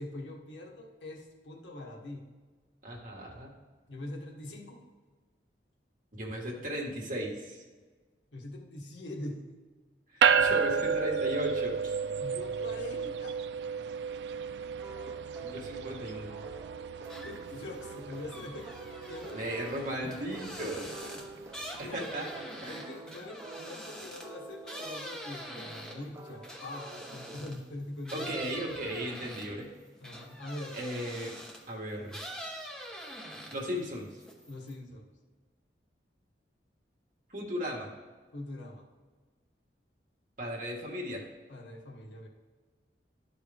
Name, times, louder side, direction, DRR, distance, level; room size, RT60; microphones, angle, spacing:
voice 1, 0.0-2.3 3.9-4.8 8.3-9.5 12.2-13.4 17.2-19.5 20.4-21.2 21.7-22.3 22.7-28.9 30.0-30.8 34.5-35.1 38.3-38.9 41.5-42.3, left 1 dB, 90° left, 0 dB, 1.3 m, -43 dB
voice 2, 2.8-3.5 6.1-7.6 10.1-12.0 15.4-16.3 19.3-20.9 21.8-22.9 28.1-29.7 30.7-31.4 31.7-32.2 33.5-34.1 37.3-37.9 40.4-41.2, equal, 45° right, -2 dB, 1.5 m, -36 dB
sound 1, 10.2-21.8, right 6 dB, 75° right, 0.3 m, -32 dB
sound 2, 14.8-27.5, right 2 dB, 15° right, 0.6 m, -49 dB
sound 3, 17.0-17.6 17.9-27.6 28.0-31.7 32.1-33.8 34.1-34.7, equal, 5° left, 0.9 m, -44 dB
12.0 x 4.7 x 3.4 m, 1.4 s
head